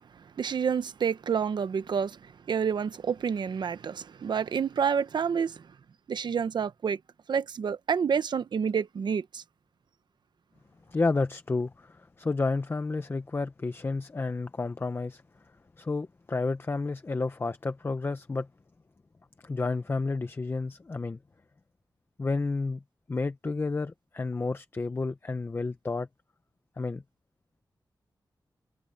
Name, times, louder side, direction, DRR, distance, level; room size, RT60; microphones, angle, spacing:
voice 1, 0.2-5.7 6.1-7.0 7.3-9.4, right 7 dB, 75° right, 0.9 m, -29 dB
voice 2, 10.9-15.2 15.8-18.5 19.4-21.2 22.2-22.8 23.1-26.1 26.8-27.0, left 3 dB, 30° left, 0.9 m, -31 dB
wide cardioid pair, 145°, 8 cm